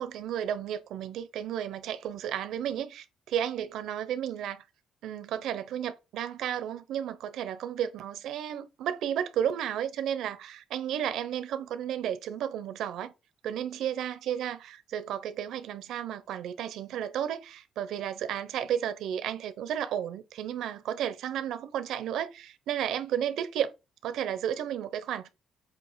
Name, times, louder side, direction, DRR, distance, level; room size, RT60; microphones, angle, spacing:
voice 1, 0.0-4.6 5.0-13.1 13.4-23.7 24.0-25.3, right 10 dB, 85° right, 0.9 m, -33 dB
8.3 x 2.9 x 5.6 m
cardioid pair, 155°, 0 cm